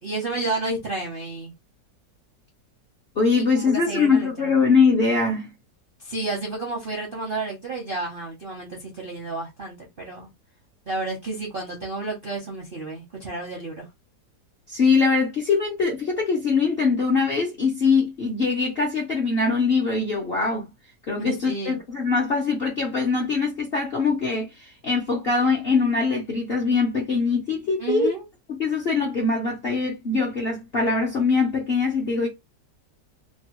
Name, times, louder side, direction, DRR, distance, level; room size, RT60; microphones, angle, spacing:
voice 1, 0.0-1.5 3.3-4.5 6.0-10.3 10.9-13.9 21.2-21.8 27.8-28.2, right 3 dB, 55° right, 0.6 m, -31 dB
voice 2, 3.2-5.5 14.7-20.7 21.1-28.1 28.6-32.3, left 4 dB, 60° left, 0.6 m, -22 dB
2.9 x 2.2 x 2.9 m
omnidirectional pair, 1.9 m